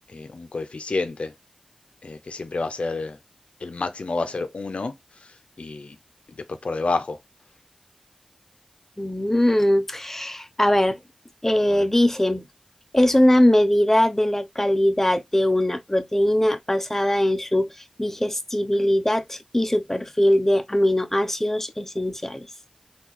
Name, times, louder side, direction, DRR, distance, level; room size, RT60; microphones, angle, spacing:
voice 1, 0.1-1.3 2.0-3.2 3.6-4.9 5.2-6.0 6.3-7.2 11.7-11.9, left 3 dB, 65° left, 0.5 m, -29 dB
voice 2, 9.0-11.0 11.4-12.4 12.9-17.7 18.0-22.5, left 1 dB, 15° left, 0.5 m, -21 dB
3.7 x 2.3 x 2.9 m
wide cardioid pair, 65°, 2 cm